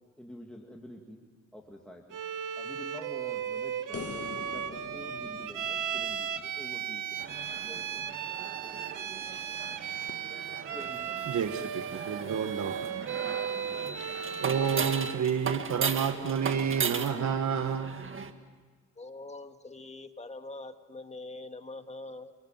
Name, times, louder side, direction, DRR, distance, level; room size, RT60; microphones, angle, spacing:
voice 1, 0.2-1.2 1.5-2.2 2.6-7.3 7.6-8.3 10.7-11.4, equal, 5° left, 0 dB, 2.4 m, -48 dB
Bowed string instrument, 2.1-15.3, right 9 dB, 80° right, 1.3 m, -36 dB
sound 1, 3.9-7.3 10.1-10.2, left 6 dB, 50° left, 1.5 m, -44 dB
sound 2, 7.2-18.3, right 5 dB, 40° right, 1.8 m, -37 dB
voice 2, 11.3-12.9 14.4-18.0, right 7 dB, 65° right, 8 dB, 1.5 m, -30 dB
voice 3, 19.0-22.3, left 2 dB, 20° left, 7 dB, 1.8 m, -43 dB
30.0 x 24.0 x 7.4 m, 1.5 s
cardioid pair, 105°, 31 cm